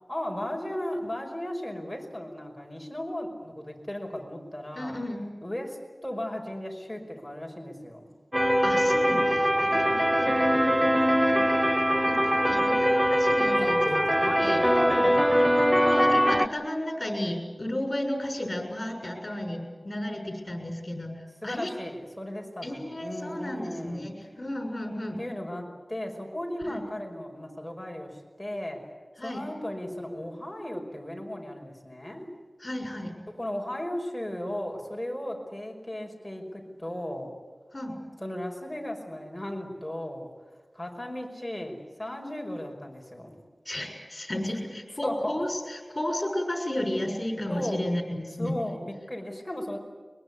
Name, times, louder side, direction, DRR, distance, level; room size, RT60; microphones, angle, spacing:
voice 1, 0.1-5.0 5.4-8.1 13.6-15.4 21.4-24.1 25.2-28.8 29.2-32.3 33.3-37.3 38.2-40.3 40.7-43.3 45.0-45.4 47.5-47.9 48.4-49.8, left 1 dB, 10° left, 1 dB, 5.2 m, -35 dB
voice 2, 4.7-5.2 8.6-10.3 11.3-11.7 12.0-14.6 15.8-21.1 21.4-21.7 22.6-24.1 24.4-25.2 26.6-26.8 29.2-29.4 32.6-33.1 37.7-38.0 43.6-48.6, left 1 dB, 35° left, 4 dB, 6.6 m, -33 dB
sound 1, 8.3-16.5, equal, 10° right, 0.9 m, -22 dB
22.5 x 22.5 x 9.8 m, 1.4 s
wide cardioid pair, 65°, 0 cm